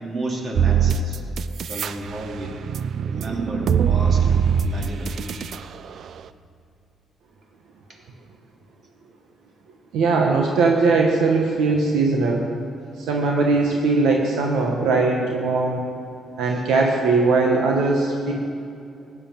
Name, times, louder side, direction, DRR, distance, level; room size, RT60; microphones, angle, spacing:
voice 1, 0.0-1.2 1.7-2.6 3.1-5.4, right 2 dB, 50° right, 0 dB, 3.0 m, -32 dB
sound 1, 0.6-1.9 2.3-5.6, right 7 dB, 65° right, 0.5 m, -21 dB
voice 2, 9.9-12.4 13.0-15.8 16.4-18.3, right 3 dB, 85° right, 0 dB, 1.4 m, -20 dB
15.5 x 9.7 x 7.4 m, 2.5 s
cardioid pair, 90°, 0 cm